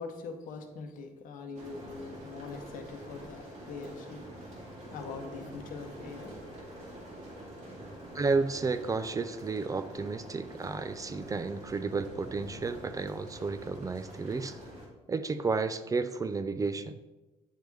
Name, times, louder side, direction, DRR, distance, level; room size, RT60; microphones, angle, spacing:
voice 1, 0.0-6.5, left 4 dB, 75° left, 5 dB, 0.8 m, -43 dB
sound 1, 1.5-14.9, right 1 dB, 55° right, 1.8 m, -46 dB
voice 2, 8.1-14.6 15.1-17.0, right 4 dB, 25° right, 11 dB, 0.4 m, -32 dB
9.0 x 3.5 x 3.1 m, 1.1 s
cardioid pair, 95°, 14 cm